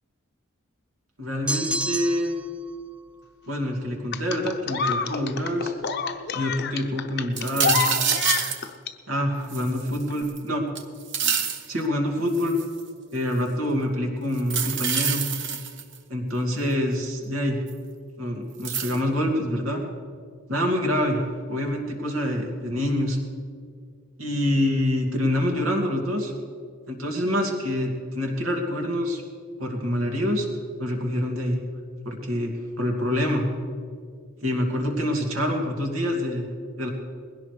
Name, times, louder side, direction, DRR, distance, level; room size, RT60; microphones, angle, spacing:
voice 1, 1.2-2.3 3.5-5.7 6.3-7.8 9.1-10.7 11.7-12.6 13.1-15.3 16.1-17.6 18.2-19.8 20.5-21.2 21.5-23.2 24.2-26.3 26.9-29.2 29.6-30.5 30.8-31.6 32.0-33.5 34.4-36.5 36.8-36.9, left 1 dB, 80° right, 1 dB, 2.4 m, -26 dB
sound 1, 1.5-2.5, right 1 dB, 5° right, 0.4 m, -29 dB
sound 2, 4.1-8.9 10.1-10.2, left 6 dB, 50° left, 0.7 m, -28 dB
sound 3, 7.4-8.6 9.5-10.4 10.8-11.7 12.3-12.8 14.4-16.0 17.7-17.8 18.6-19.0, right 7 dB, 60° right, 1.0 m, -26 dB
21.0 x 16.5 x 3.3 m, 2.1 s
head